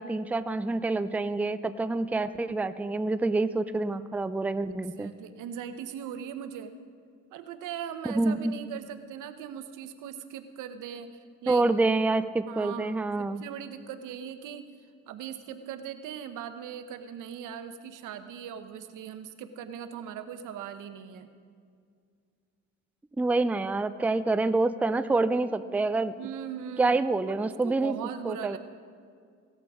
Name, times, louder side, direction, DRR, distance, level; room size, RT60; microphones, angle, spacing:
voice 1, 0.0-5.1 8.1-8.4 11.5-13.4 23.2-26.2 26.8-28.0 28.2-28.6, right 3 dB, 5° right, 12 dB, 0.4 m, -27 dB
voice 2, 4.9-6.7 7.3-11.7 12.5-21.3 26.2-27.0 27.3-28.6, right 9 dB, 90° right, 9 dB, 0.9 m, -40 dB
17.5 x 14.0 x 3.6 m, 2.2 s
cardioid pair, 90°, 30 cm